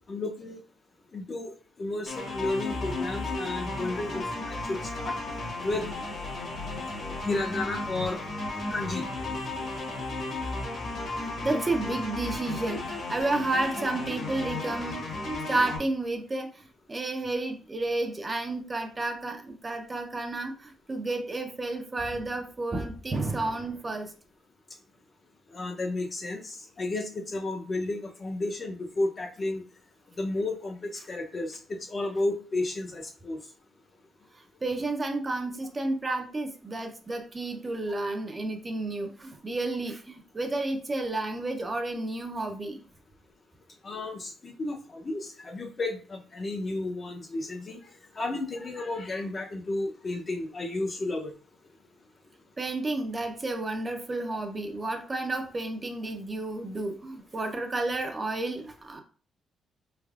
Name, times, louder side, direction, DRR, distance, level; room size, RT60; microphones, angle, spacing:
voice 1, 0.1-0.6 1.1-1.5 1.8-5.1 5.6-5.9 7.3-8.2 8.7-9.1 25.5-29.6 30.2-31.6 31.9-33.4 43.8-47.8 48.2-51.3, left 2 dB, 35° left, 3 dB, 0.6 m, -32 dB
sound 1, 2.1-15.8, left 2 dB, 55° left, 1.2 m, -34 dB
voice 2, 6.8-7.2 11.4-15.0 15.5-24.1 34.6-42.8 52.6-59.0, right 2 dB, 25° right, 4 dB, 0.5 m, -31 dB
3.3 x 3.2 x 2.3 m, 0.39 s
cardioid pair, 125°, 0 cm